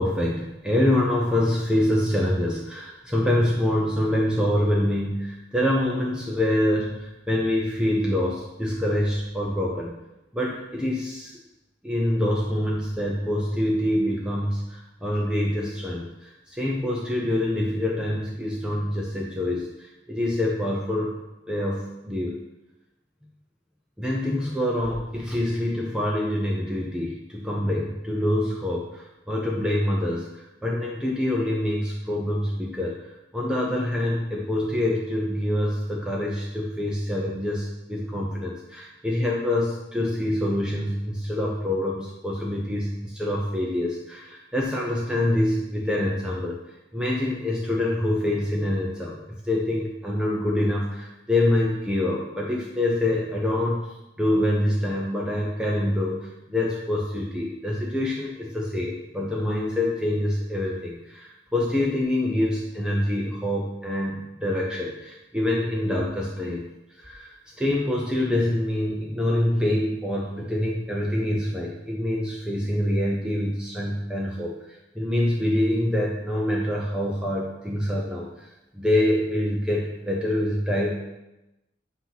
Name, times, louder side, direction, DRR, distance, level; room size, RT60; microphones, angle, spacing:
voice 1, 0.0-9.9 10.3-11.3 11.8-21.1 21.5-22.4 24.0-46.6 46.9-49.2 49.4-66.7 67.0-78.5 78.7-81.0, left 1 dB, 5° right, -4 dB, 0.7 m, -26 dB
8.0 x 2.9 x 5.8 m, 0.95 s
head